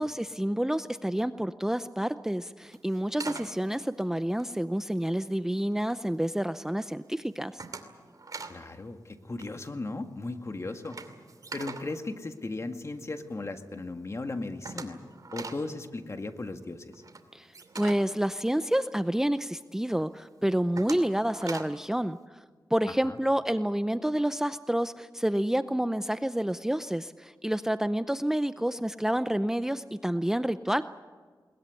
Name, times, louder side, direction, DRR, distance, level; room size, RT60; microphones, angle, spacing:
voice 1, 0.0-7.6 17.3-17.5 17.7-22.4 22.7-30.8, right 1 dB, 5° right, 12 dB, 0.6 m, -29 dB
sound 1, 2.6-5.2 5.6-6.1 6.5-6.9 7.2-8.6 8.9-9.1 9.3-13.1 13.5-13.6 13.9-14.0 14.1-19.2 19.6-19.7 20.2-21.9, right 3 dB, 55° right, 2.7 m, -43 dB
voice 2, 8.5-11.0 11.5-15.0 15.3-16.9 23.1-23.2, left 2 dB, 40° left, 6 dB, 1.9 m, -36 dB
21.5 x 20.0 x 9.7 m, 1.5 s
cardioid pair, 65°, 8 cm